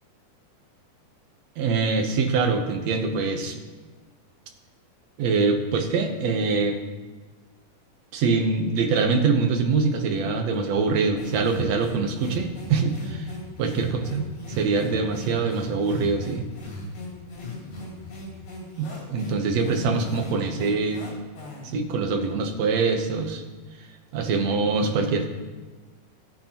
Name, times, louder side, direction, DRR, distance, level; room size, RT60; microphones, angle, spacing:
voice 1, 1.6-3.6 5.2-6.8 8.1-13.3 13.6-14.2 14.5-16.4 18.8-21.0 21.6-23.4 24.1-25.3, right 4 dB, 65° right, 4 dB, 1.9 m, -24 dB
sound 1, 11.2-21.8, left 2 dB, 85° left, 4.8 m, -38 dB
17.0 x 8.6 x 3.0 m, 1.3 s
omnidirectional pair, 3.7 m